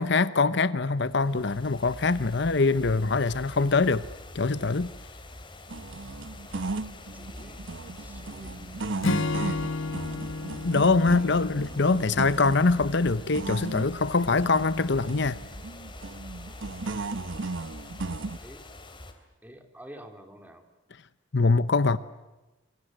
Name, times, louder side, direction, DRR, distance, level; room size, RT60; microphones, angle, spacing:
voice 1, 0.0-4.1 4.3-4.9 10.6-15.4 21.3-22.0, left 3 dB, 60° left, 0.9 m, -23 dB
sound 1, 0.9-19.1, left 1 dB, 25° left, 3.3 m, -44 dB
sound 2, 5.7-18.4, right 3 dB, 70° right, 1.0 m, -37 dB
voice 2, 6.9-8.8 9.1-9.7 11.1-11.5 18.4-18.6 19.4-20.7, equal, 10° right, 3.4 m, -49 dB
Acoustic guitar / Strum, 9.0-12.5, left 3 dB, 80° left, 1.4 m, -31 dB
28.0 x 24.0 x 7.8 m
head